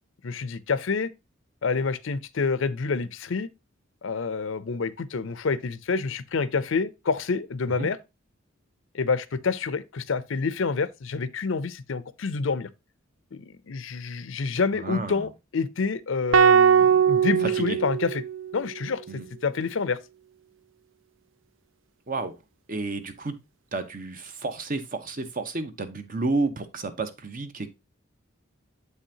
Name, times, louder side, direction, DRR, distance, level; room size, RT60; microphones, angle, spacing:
voice 1, 0.2-1.1 1.6-3.5 4.0-8.0 8.9-12.7 13.3-18.2 18.5-19.0 19.4-20.0, left 4 dB, 65° left, 0.5 m, -28 dB
voice 2, 14.8-15.3 17.6-17.8 19.1-19.3 22.1-22.3 22.7-23.4 23.7-27.7, right 3 dB, 40° right, 0.9 m, -31 dB
sound 1, 16.3-18.7, right 7 dB, 65° right, 0.5 m, -20 dB
7.8 x 5.5 x 2.8 m
head